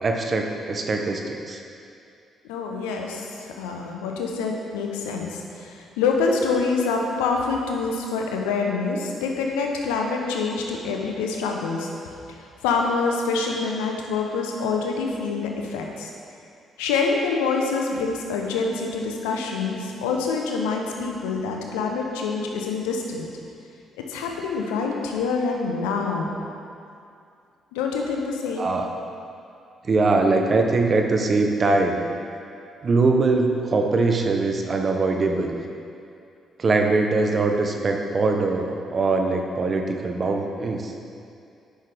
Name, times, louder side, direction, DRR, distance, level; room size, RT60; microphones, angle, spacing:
voice 1, 0.0-1.6 28.6-28.8 29.9-32.0 32.8-35.6 36.6-40.9, right 3 dB, 45° right, 3 dB, 0.9 m, -22 dB
voice 2, 2.4-11.9 12.3-12.4 12.6-16.1 16.8-23.3 24.1-26.3 27.7-28.7, left 4 dB, 90° left, 1 dB, 0.8 m, -26 dB
10.0 x 5.9 x 3.5 m, 2.5 s
supercardioid pair, 55°, 0 cm